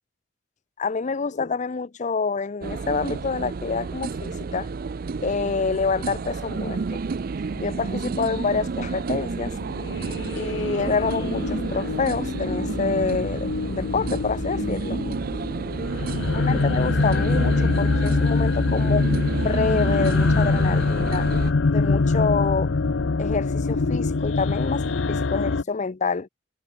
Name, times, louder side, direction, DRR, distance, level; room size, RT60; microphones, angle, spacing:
voice 1, 0.8-4.7 5.2-7.0 7.5-9.6 10.3-15.0 16.3-19.1 19.4-21.3 21.7-22.7 23.2-26.3, left 4 dB, 40° left, 0.6 m, -27 dB
sound 1, 2.6-21.5, right 4 dB, 50° right, 0.4 m, -30 dB
sound 2, 9.4-25.6, left 3 dB, 85° left, 0.7 m, -24 dB
head